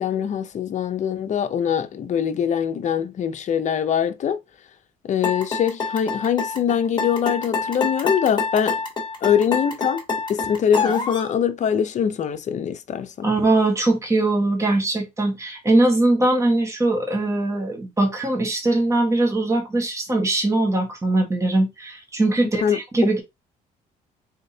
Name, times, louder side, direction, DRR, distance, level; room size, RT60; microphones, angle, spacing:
voice 1, 0.0-4.4 5.0-8.8 9.2-10.0 10.3-13.3 22.6-22.8, left 8 dB, 45° left, 0.7 m, -23 dB
sound 1, 5.2-11.3, left 4 dB, 25° left, 1.6 m, -26 dB
voice 2, 13.2-23.2, right 2 dB, 15° right, 1.3 m, -21 dB
3.7 x 3.5 x 2.8 m
cardioid pair, 110°, 17 cm